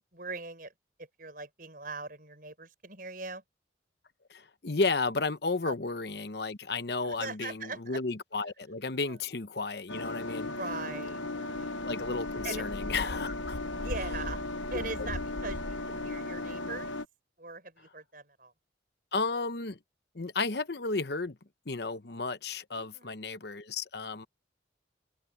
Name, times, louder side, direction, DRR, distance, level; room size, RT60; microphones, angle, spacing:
voice 1, 0.1-0.7 1.2-3.4 5.6-5.7 7.0-8.0 9.1-9.2 10.3-11.7 12.4-12.6 13.8-14.4 14.7-16.9 17.4-18.5 22.7-23.1, right 3 dB, 50° right, 6.2 m, -41 dB
voice 2, 4.3-10.5 11.8-13.6 14.7-15.1 19.1-19.8 20.1-21.4 21.7-24.3, left 3 dB, 60° left, 1.0 m, -33 dB
sound 1, 9.9-17.1, left 2 dB, 90° left, 1.2 m, -36 dB
head